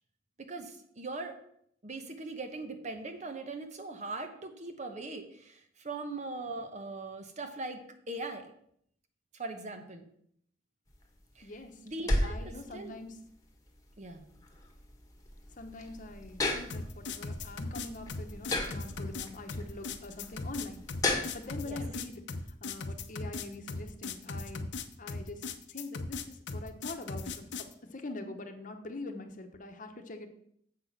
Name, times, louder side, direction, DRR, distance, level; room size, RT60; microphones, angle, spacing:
voice 1, 0.4-1.4 1.8-8.5 9.3-10.1 11.4-11.5 11.9-12.4 12.7-12.9 14.0-14.2 21.6-21.8, right 2 dB, 40° right, 7 dB, 1.0 m, -40 dB
sound 1, 10.9-21.6, left 2 dB, 20° left, 1.4 m, -36 dB
voice 2, 11.4-11.8 12.2-13.2 15.5-20.8 21.3-22.2 22.6-24.6 25.0-30.3, left 2 dB, 45° left, 6 dB, 1.0 m, -44 dB
sound 2, 16.7-27.7, left 3 dB, 75° left, 0.7 m, -38 dB
7.6 x 6.1 x 5.9 m, 0.68 s
head